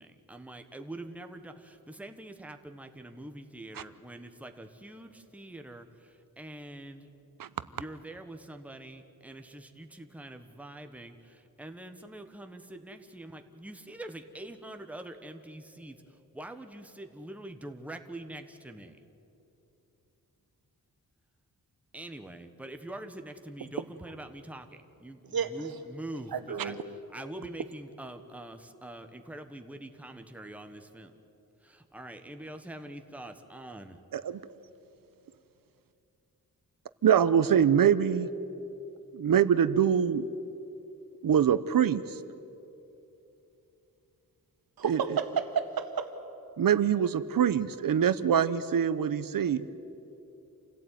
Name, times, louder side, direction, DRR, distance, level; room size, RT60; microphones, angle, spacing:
voice 1, 0.0-7.1 7.7-19.0 21.9-26.8 27.1-31.1 31.6-34.0, right 1 dB, 5° right, 6 dB, 1.3 m, -44 dB
voice 2, 26.3-26.8 44.8-46.1, right 7 dB, 85° right, 7 dB, 1.9 m, -31 dB
voice 3, 37.0-38.3 39.1-40.3 41.2-42.0 44.8-45.0 46.6-49.7, right 8 dB, 70° right, 14 dB, 0.9 m, -24 dB
28.0 x 16.5 x 9.3 m, 2.9 s
wide cardioid pair, 135°, 36 cm